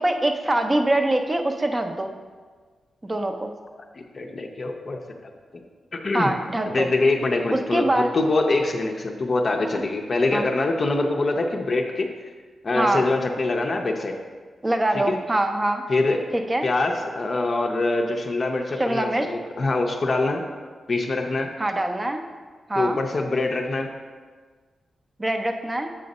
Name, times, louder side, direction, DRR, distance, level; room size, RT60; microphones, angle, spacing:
voice 1, 0.0-2.1 3.0-3.5 6.1-6.9 7.5-8.1 10.3-10.4 12.7-13.0 14.6-15.8 16.3-16.7 18.8-19.3 21.6-22.2 22.7-23.0 25.2-25.9, right 1 dB, 20° right, 5 dB, 0.5 m, -23 dB
voice 2, 3.9-5.6 5.9-6.3 6.7-12.1 12.6-14.1 14.9-15.2 15.9-16.2 16.6-20.4 20.9-21.5 22.8-23.9, left 2 dB, 40° left, 2 dB, 0.5 m, -24 dB
7.7 x 3.9 x 5.3 m, 1.5 s
wide cardioid pair, 140°, 0 cm